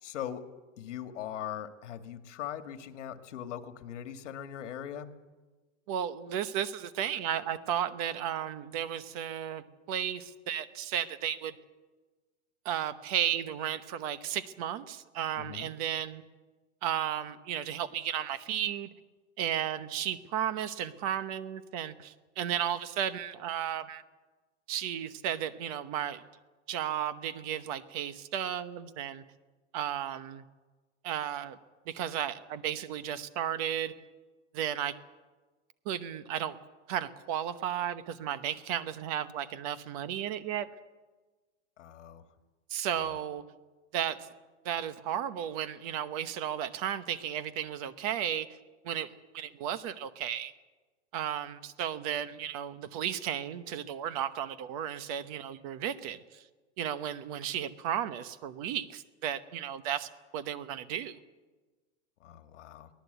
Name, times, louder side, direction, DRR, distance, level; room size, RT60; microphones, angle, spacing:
voice 1, 0.0-0.5 0.8-5.1 15.4-15.7 41.8-42.2 42.9-43.2 62.2-62.9, left 10 dB, 85° left, 8 dB, 2.2 m, -40 dB
voice 2, 5.9-11.6 12.6-16.2 16.8-18.9 19.4-24.0 24.7-26.2 26.7-29.2 29.7-30.4 31.0-31.6 31.9-33.9 34.5-35.0 35.8-36.6 36.9-40.7 42.7-43.4 43.9-44.3 44.6-48.5 48.8-50.5 51.1-56.4 56.8-61.2, right 10 dB, 30° right, 13 dB, 0.9 m, -34 dB
23.5 x 18.0 x 8.1 m, 1.3 s
supercardioid pair, 180°, 36 cm